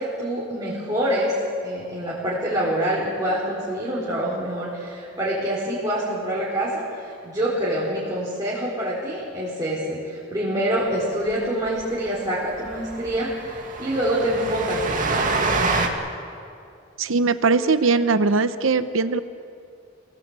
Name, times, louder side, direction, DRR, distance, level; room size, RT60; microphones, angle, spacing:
voice 1, 0.0-1.3 1.6-15.5, equal, 20° right, -7 dB, 4.6 m, -26 dB
Train, 11.3-11.4 11.7-11.8 12.1-12.2 12.5-15.9, right 3 dB, 45° right, 2.2 m, -26 dB
voice 2, 17.0-19.2, right 4 dB, 85° right, 11 dB, 0.8 m, -20 dB
27.0 x 17.5 x 8.2 m, 2.5 s
head